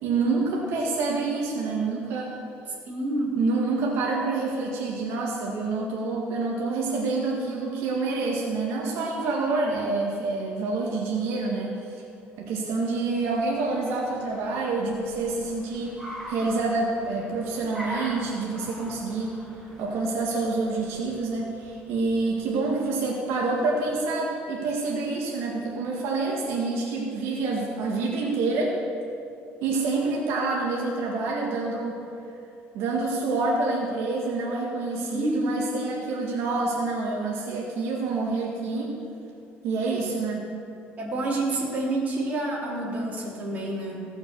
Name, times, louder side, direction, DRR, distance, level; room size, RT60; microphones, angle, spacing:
voice 1, 0.0-2.4 3.4-12.0 12.4-19.4 19.8-28.7 29.6-32.0 32.7-38.9 39.6-40.4, right 3 dB, 75° right, -2 dB, 1.6 m, -27 dB
voice 2, 2.9-3.4 35.0-35.5 41.0-44.1, right 2 dB, 35° right, -5 dB, 3.2 m, -28 dB
Car, 12.5-22.7, equal, 5° right, 2.1 m, -43 dB
16.5 x 5.9 x 6.7 m, 2.6 s
cardioid pair, 145°, 5 cm